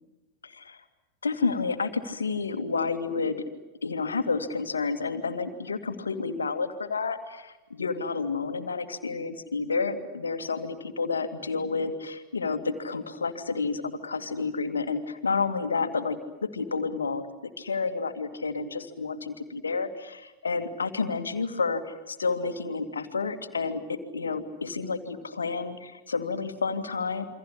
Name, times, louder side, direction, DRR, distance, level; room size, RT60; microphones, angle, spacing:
voice 1, 0.4-0.8 1.2-3.4 3.8-17.2 17.6-27.2, left 4 dB, 75° left, 8 dB, 2.2 m, -30 dB
28.5 x 24.5 x 8.5 m, 1.0 s
figure-of-eight pair, 90°, 0 cm